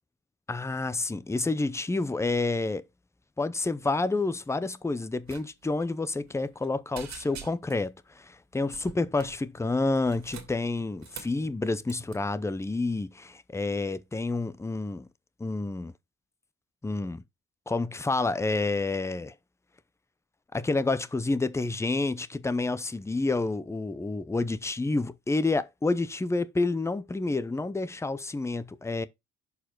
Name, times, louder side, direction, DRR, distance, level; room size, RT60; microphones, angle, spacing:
voice 1, 0.5-2.8 3.4-15.1 15.4-15.9 16.8-17.2 17.7-19.3 20.5-29.1, left 3 dB, 10° left, 0.6 m, -29 dB
sound 1, 5.2-5.4 5.7-5.9 6.3-6.7 6.9-7.9 8.7-9.4 10.0-11.4 11.9-12.2, right 8 dB, 65° right, 2.1 m, -45 dB
6.7 x 4.7 x 4.5 m
cardioid pair, 90°, 30 cm